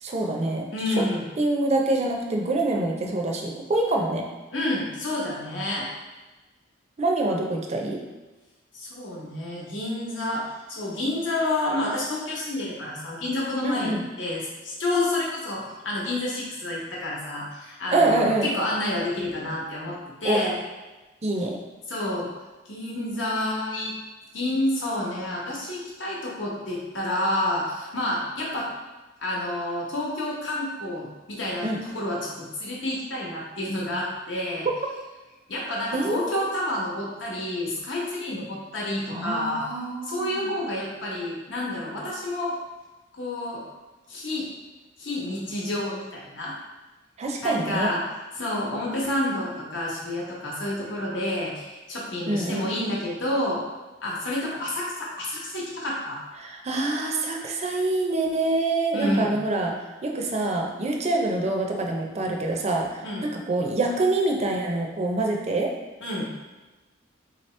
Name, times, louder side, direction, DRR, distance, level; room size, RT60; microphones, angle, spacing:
voice 1, 0.0-0.7 1.0-1.1 1.4-4.3 7.0-8.0 13.6-14.0 17.9-18.5 20.2-20.4 21.2-21.6 31.6-31.8 35.9-36.5 39.1-40.5 47.2-47.9 52.3-52.7 56.4-59.8 60.0-65.7, right 2 dB, 35° right, 1 dB, 0.5 m, -25 dB
voice 2, 0.7-1.2 4.5-5.9 8.7-10.4 10.7-20.6 21.9-22.3 22.7-23.9 24.3-28.7 29.2-34.7 35.5-39.6 40.0-42.5 43.1-43.6 44.1-44.5 45.0-46.5 47.4-48.0 48.3-53.6 54.0-56.2 58.9-59.3 63.0-63.3 66.0-66.3, left 1 dB, 70° left, -4 dB, 1.0 m, -29 dB
3.8 x 2.9 x 3.2 m, 1.2 s
head